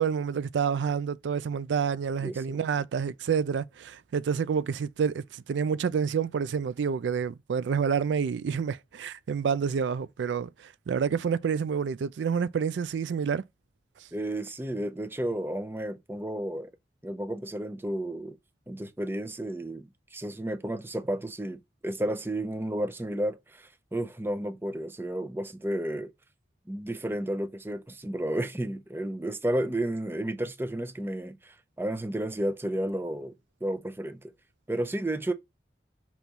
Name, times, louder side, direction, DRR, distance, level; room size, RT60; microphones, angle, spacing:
voice 1, 0.0-13.4, right 6 dB, 85° right, 0.3 m, -28 dB
voice 2, 2.2-2.6 14.1-16.7 17.0-18.4 18.7-26.1 26.7-33.3 33.6-34.3 34.7-35.3, right 1 dB, 10° right, 0.5 m, -32 dB
5.8 x 3.0 x 5.3 m
head